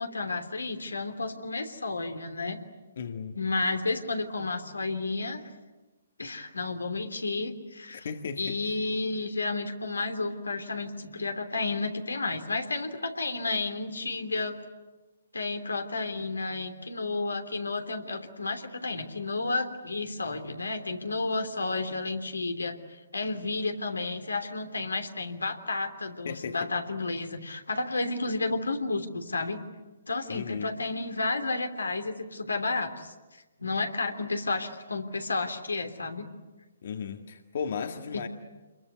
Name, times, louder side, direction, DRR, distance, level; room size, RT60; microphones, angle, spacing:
voice 1, 0.0-2.6 3.3-5.4 6.2-8.1 8.4-14.5 15.3-22.7 23.1-29.6 30.1-33.1 33.6-36.3, left 3 dB, 90° left, 5 dB, 3.1 m, -31 dB
voice 2, 3.0-3.4 7.9-8.6 26.3-26.7 30.3-30.7 36.8-38.3, left 6 dB, 60° left, 6 dB, 1.8 m, -35 dB
27.0 x 22.5 x 9.6 m, 1.2 s
hypercardioid pair, 135°, 0 cm